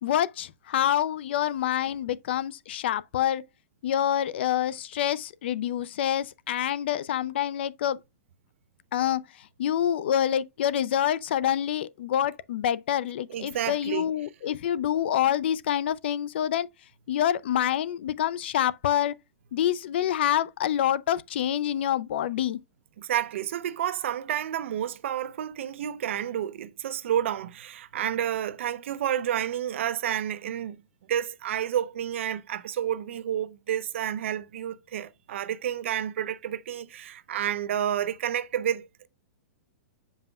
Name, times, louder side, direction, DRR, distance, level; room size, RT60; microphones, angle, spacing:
voice 1, 0.0-3.4 3.8-8.0 8.9-16.7 17.1-19.1 19.5-22.6, left 10 dB, 45° left, 0.4 m, -27 dB
voice 2, 13.3-14.1 23.0-30.8 31.1-39.1, right 10 dB, 50° right, 0.5 m, -30 dB
7.9 x 5.4 x 2.3 m
supercardioid pair, 180°, 8 cm